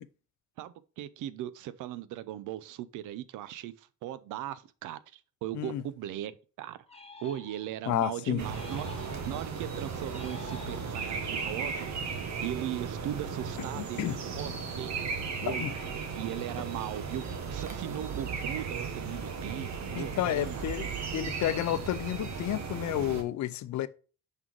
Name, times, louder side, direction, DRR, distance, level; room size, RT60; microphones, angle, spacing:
voice 1, 0.6-6.8 7.2-8.9 9.3-15.0 15.4-15.7 16.1-20.7, right 12 dB, 90° right, 0.6 m, -38 dB
sound 1, 6.9-7.9 8.5-9.5 10.1-11.3, left 4 dB, 20° left, 1.2 m, -48 dB
voice 2, 7.9-8.4 13.8-14.2 15.5-15.7 19.9-23.9, left 13 dB, 70° left, 0.6 m, -31 dB
sound 2, 8.4-23.2, right 5 dB, 65° right, 1.4 m, -36 dB
sound 3, 16.2-21.3, right 10 dB, 35° right, 0.4 m, -44 dB
5.5 x 3.8 x 4.6 m
cardioid pair, 90°, 30 cm